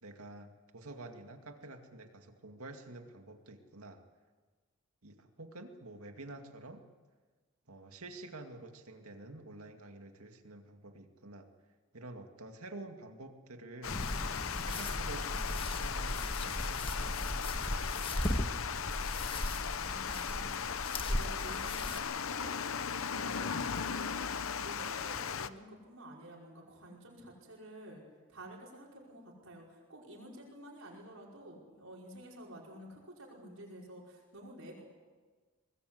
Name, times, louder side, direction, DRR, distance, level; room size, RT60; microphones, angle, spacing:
voice 1, 0.0-4.0 5.0-6.8 7.7-11.5 11.9-14.0 14.6-18.6, right 2 dB, 85° right, 5 dB, 2.3 m, -49 dB
Water, 13.8-25.5, left 7 dB, 70° left, 0.8 m, -37 dB
sound 1, 13.9-22.0, left 1 dB, 25° left, 1.6 m, -37 dB
voice 2, 19.3-22.6 23.1-23.5 23.9-28.0 28.3-34.8, right 1 dB, 70° right, -2 dB, 5.4 m, -51 dB
24.5 x 20.0 x 8.0 m, 1.4 s
head